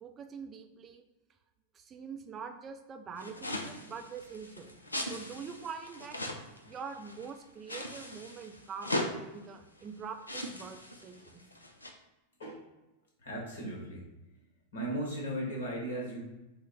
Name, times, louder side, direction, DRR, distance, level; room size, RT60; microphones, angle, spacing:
voice 1, 0.0-1.0 1.7-4.8 5.1-6.2 6.7-11.4, right 6 dB, 25° right, 6 dB, 0.4 m, -44 dB
sound 1, 3.2-7.3 7.7-9.1 9.8-9.9 10.2-11.9, left 1 dB, 80° left, 0.4 m, -39 dB
voice 2, 13.2-14.0 14.7-16.2, right 1 dB, 65° left, -2 dB, 1.1 m, -36 dB
4.3 x 2.1 x 3.8 m, 1.0 s
figure-of-eight pair, 90°, 0 cm